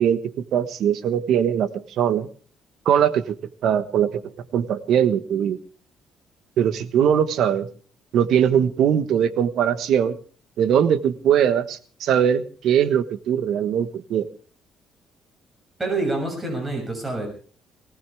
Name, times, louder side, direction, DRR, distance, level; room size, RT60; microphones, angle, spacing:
voice 1, 0.0-2.3 2.8-3.4 3.6-4.1 4.5-5.6 6.6-7.7 8.1-10.2 10.6-14.3, right 9 dB, 65° right, 12 dB, 1.3 m, -21 dB
voice 2, 15.8-17.3, right 2 dB, 15° right, 2 dB, 6.8 m, -26 dB
19.0 x 18.5 x 3.5 m, 0.40 s
cardioid pair, 130°, 0 cm